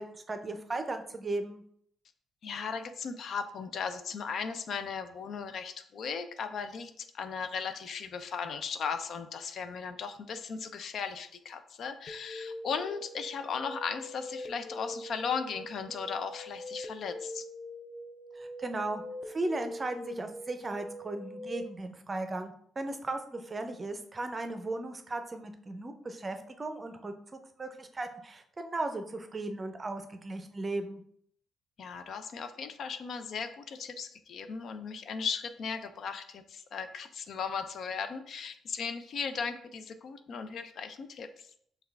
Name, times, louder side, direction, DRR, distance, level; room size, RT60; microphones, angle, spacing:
voice 1, 0.0-1.6 18.4-31.0, right 2 dB, 30° right, 7 dB, 0.6 m, -36 dB
voice 2, 2.4-17.4 31.8-41.5, left 6 dB, 60° left, 9 dB, 0.4 m, -37 dB
sound 1, 12.1-21.6, left 1 dB, 15° left, 0.7 m, -43 dB
5.6 x 2.3 x 3.4 m, 0.66 s
cardioid pair, 90°, 0 cm